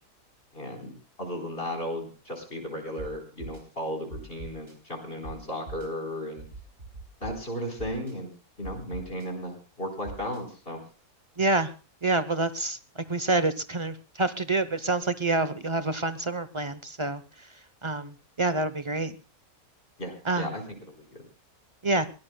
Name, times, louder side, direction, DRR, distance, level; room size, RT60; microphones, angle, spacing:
voice 1, 0.5-6.4 7.2-8.3 8.6-10.8 20.0-21.3, equal, 35° left, 3 dB, 4.4 m, -35 dB
sound 1, 3.0-3.1 3.4-3.6 4.1-4.7 5.2-5.3 5.7-5.9 6.4-7.3 7.8-8.1 8.6-9.3 10.0-10.4, right 3 dB, 50° right, 3.6 m, -40 dB
voice 2, 11.4-11.7 12.0-17.2 17.8-19.2 20.3-20.5 21.8-22.1, right 2 dB, 30° right, 12 dB, 0.6 m, -27 dB
23.0 x 17.0 x 2.2 m, 0.36 s
omnidirectional pair, 1.6 m